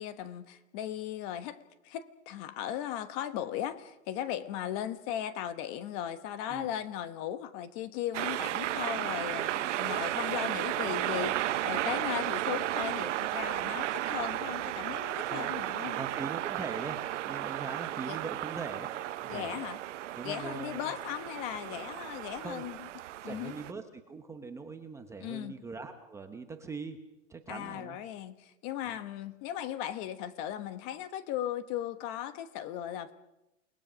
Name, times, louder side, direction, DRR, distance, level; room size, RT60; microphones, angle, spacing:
voice 1, 0.0-1.6 1.8-16.0 18.0-18.2 19.3-19.8 20.2-22.8 23.2-23.6 25.2-25.5 27.5-33.1, left 11 dB, 30° left, 12 dB, 1.2 m, -37 dB
sound 1, 8.1-23.7, right 14 dB, 65° right, 0.9 m, -34 dB
voice 2, 15.9-17.0 17.2-18.9 19.2-19.5 20.1-20.9 22.4-22.7 23.2-27.0 27.3-28.0 28.8-29.0, right 4 dB, 5° right, 6 dB, 0.9 m, -41 dB
28.5 x 20.0 x 6.2 m, 0.93 s
supercardioid pair, 160°, 40 cm